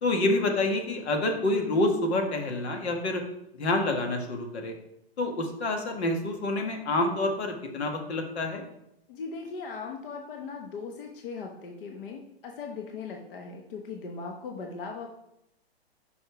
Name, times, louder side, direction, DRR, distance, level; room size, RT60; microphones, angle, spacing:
voice 1, 0.0-3.2 3.6-4.7 5.2-8.6, left 2 dB, 80° left, 3 dB, 1.6 m, -27 dB
voice 2, 9.1-15.1, left 4 dB, 55° left, 2 dB, 1.0 m, -39 dB
5.5 x 5.1 x 4.8 m, 0.80 s
hypercardioid pair, 155°, 32 cm